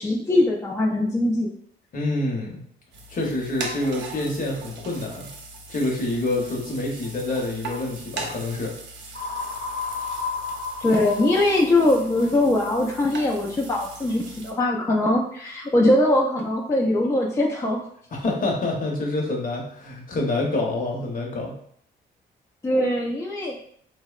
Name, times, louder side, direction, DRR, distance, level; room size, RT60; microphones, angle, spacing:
voice 1, 0.0-1.5 10.8-17.8 22.6-23.6, left 1 dB, 15° left, -2 dB, 0.3 m, -21 dB
voice 2, 1.9-2.6 3.1-5.3 5.7-8.7 18.1-21.5, left 2 dB, 45° left, -1 dB, 0.8 m, -27 dB
sound 1, 2.9-14.5, right 3 dB, 70° right, 0.5 m, -39 dB
sound 2, 9.1-13.0, left 4 dB, 70° left, 0.9 m, -33 dB
2.7 x 2.0 x 2.3 m, 0.64 s
cardioid pair, 90°, 20 cm